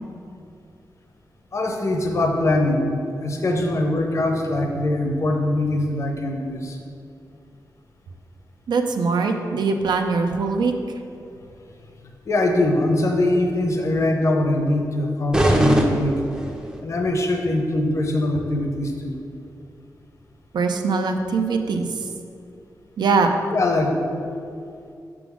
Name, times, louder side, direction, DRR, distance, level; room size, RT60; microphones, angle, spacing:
voice 1, 1.5-2.9 3.2-6.8 12.3-16.2 16.8-19.2 23.5-24.0, left 1 dB, 45° left, 2 dB, 0.7 m, -22 dB
voice 2, 8.7-10.7 20.5-21.9 23.0-23.3, right 4 dB, 90° right, 5 dB, 0.5 m, -22 dB
sound 1, 15.3-16.8, right 1 dB, 10° right, 0.5 m, -20 dB
6.0 x 3.8 x 6.0 m, 2.5 s
wide cardioid pair, 175°, 7 cm